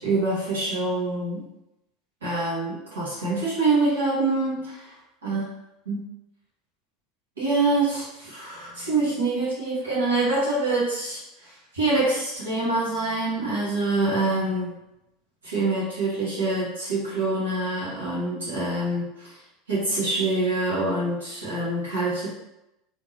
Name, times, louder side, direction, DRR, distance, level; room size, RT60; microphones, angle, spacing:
voice 1, 0.0-1.4 2.2-4.9 5.2-5.4 5.8-6.0 7.4-14.8 15.4-19.4 19.7-22.3, right 2 dB, 75° right, -9 dB, 1.4 m, -25 dB
3.6 x 2.8 x 3.0 m, 0.90 s
figure-of-eight pair, 75°, 0 cm